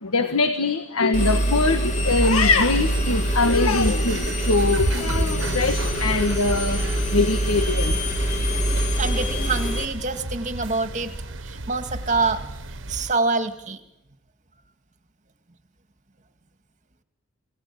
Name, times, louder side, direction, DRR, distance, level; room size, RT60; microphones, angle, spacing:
voice 1, 0.0-6.8 7.1-8.0, left 3 dB, 80° left, 8 dB, 1.6 m, -22 dB
Engine, 1.1-9.9, right 1 dB, 35° left, 3.3 m, -24 dB
sound 1, 2.1-13.1, right 2 dB, 60° right, 1.5 m, -32 dB
voice 2, 9.0-11.1 11.4-12.6 12.9-13.8, right 3 dB, 35° right, 8 dB, 2.2 m, -26 dB
27.5 x 19.0 x 8.6 m, 0.86 s
head